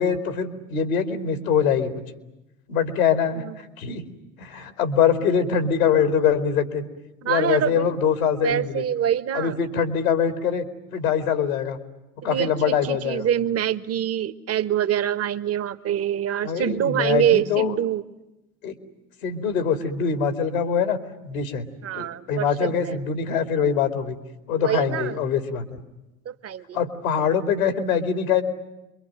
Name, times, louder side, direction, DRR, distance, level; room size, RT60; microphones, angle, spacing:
voice 1, 0.0-2.0 2.7-4.0 4.4-6.8 7.2-8.8 9.3-10.6 10.9-11.8 12.2-13.3 16.4-17.7 18.6-18.7 19.2-21.0 21.2-21.7 21.9-24.2 24.5-25.8 26.7-28.4, left 7 dB, 80° left, 9 dB, 2.8 m, -23 dB
voice 2, 7.2-7.9 8.4-9.6 12.2-18.0 21.8-23.0 24.6-25.2 26.2-26.8, right 10 dB, 35° right, 12 dB, 1.4 m, -25 dB
27.0 x 23.5 x 9.0 m, 0.98 s
hypercardioid pair, 75°, 41 cm